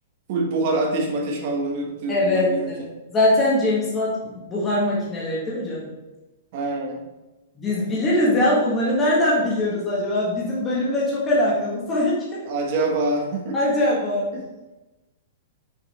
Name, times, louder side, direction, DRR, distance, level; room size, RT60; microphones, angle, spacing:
voice 1, 0.3-2.7 6.5-7.0 12.4-13.5 14.3-14.4, right 2 dB, 45° right, 0 dB, 1.4 m, -25 dB
voice 2, 2.1-5.9 7.6-12.2 13.5-14.2, left 1 dB, 15° left, -6 dB, 1.5 m, -22 dB
6.1 x 4.2 x 4.2 m, 1.1 s
hypercardioid pair, 160°, 0 cm